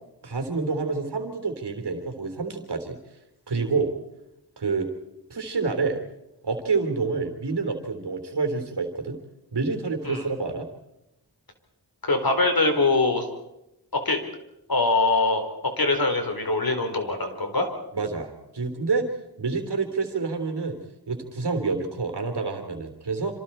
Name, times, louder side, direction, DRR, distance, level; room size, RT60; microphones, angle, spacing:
voice 1, 0.2-3.0 3.5-3.9 4.6-4.9 5.3-6.0 6.4-9.2 9.5-10.7 17.9-19.1 19.4-20.8 21.1-23.4, right 4 dB, 85° right, 6 dB, 3.4 m, -28 dB
voice 2, 12.0-13.3 14.0-14.2 14.7-15.4 15.8-17.7, left 3 dB, 60° left, 5 dB, 4.2 m, -23 dB
27.0 x 26.5 x 4.4 m, 0.89 s
wide cardioid pair, 55°, 40 cm